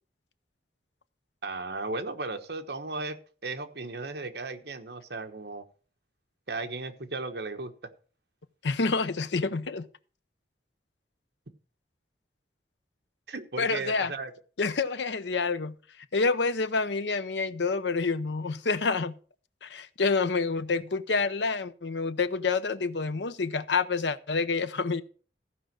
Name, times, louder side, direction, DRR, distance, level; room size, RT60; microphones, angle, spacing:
voice 1, 1.4-5.6 6.5-7.9 13.3-14.3, right 3 dB, 70° right, 1.2 m, -36 dB
voice 2, 8.6-9.9 13.6-14.1 14.6-15.8 16.1-19.2 19.6-25.0, left 4 dB, 85° left, 0.7 m, -28 dB
14.5 x 5.3 x 6.1 m
head